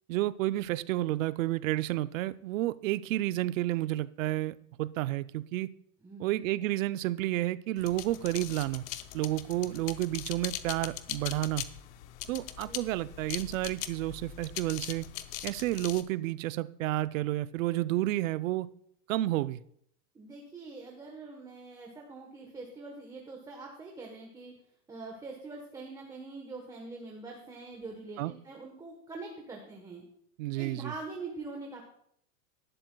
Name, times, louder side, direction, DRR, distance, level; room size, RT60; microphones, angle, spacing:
voice 1, 0.1-5.7 6.2-8.8 9.1-11.7 12.3-15.1 15.4-18.7 19.1-19.6 28.2-28.3 30.4-30.9, right 16 dB, 55° right, 16 dB, 0.5 m, -31 dB
voice 2, 6.0-6.4 12.6-12.8 20.1-24.5 24.9-30.0 30.6-31.8, right 3 dB, 10° right, 1 dB, 1.1 m, -44 dB
sound 1, 7.8-16.0, left 13 dB, 40° left, 0.6 m, -41 dB
17.5 x 11.5 x 2.3 m, 0.69 s
supercardioid pair, 155°, 48 cm